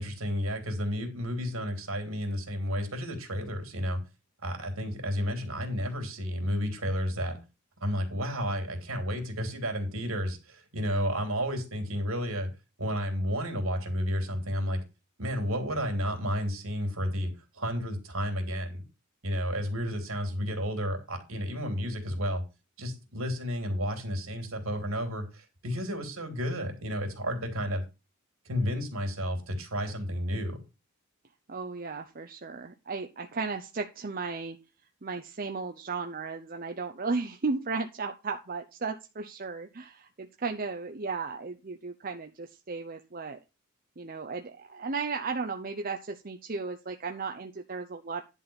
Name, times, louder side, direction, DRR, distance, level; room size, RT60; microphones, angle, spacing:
voice 1, 0.0-4.0 4.4-7.4 7.8-12.5 12.8-14.8 15.2-18.8 19.2-22.4 22.8-27.8 28.4-30.6, equal, 65° right, 5 dB, 3.1 m, -31 dB
voice 2, 31.5-34.6 35.0-43.4 44.0-48.2, right 4 dB, 40° right, 5 dB, 0.7 m, -35 dB
10.5 x 4.2 x 7.1 m, 0.28 s
head